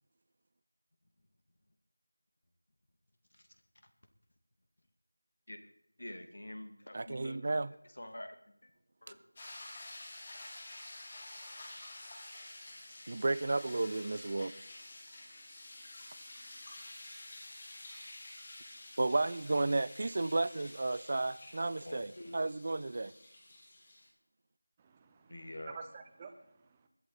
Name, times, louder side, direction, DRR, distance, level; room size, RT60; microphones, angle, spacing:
voice 1, 6.0-7.4 7.9-8.7 9.0-9.2 21.8-22.4 25.3-25.8, left 1 dB, 60° left, 2.4 m, -47 dB
voice 2, 6.9-7.7 13.1-14.5 19.0-23.1, right 2 dB, 35° right, 0.5 m, -33 dB
sound 1, 9.4-24.1, left 2 dB, 25° left, 3.3 m, -50 dB
voice 3, 24.8-26.9, right 5 dB, 15° right, 0.9 m, -51 dB
20.5 x 12.0 x 4.2 m
figure-of-eight pair, 175°, 0 cm